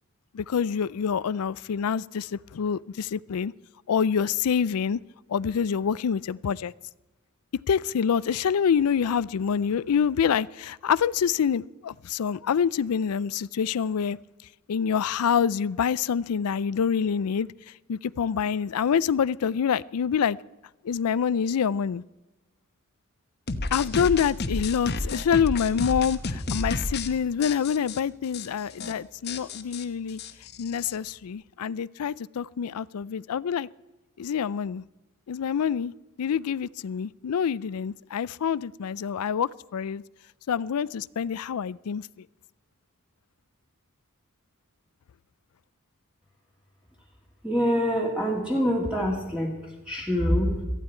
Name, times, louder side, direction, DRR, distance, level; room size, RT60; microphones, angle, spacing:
voice 1, 0.3-3.5 3.9-5.0 5.3-6.7 7.7-14.2 14.7-17.5 17.9-20.4 20.8-22.0 23.7-30.2 30.6-33.7 34.2-34.8 35.3-35.9 36.2-40.0 40.5-42.1, left 7 dB, 85° left, 0.4 m, -26 dB
sound 1, 23.5-27.1 27.4-28.0 28.3-28.5 28.7-28.9 29.3-31.0, left 3 dB, 50° left, 1.0 m, -31 dB
voice 2, 47.4-50.6, equal, 5° right, 1.8 m, -25 dB
18.0 x 14.0 x 4.4 m
head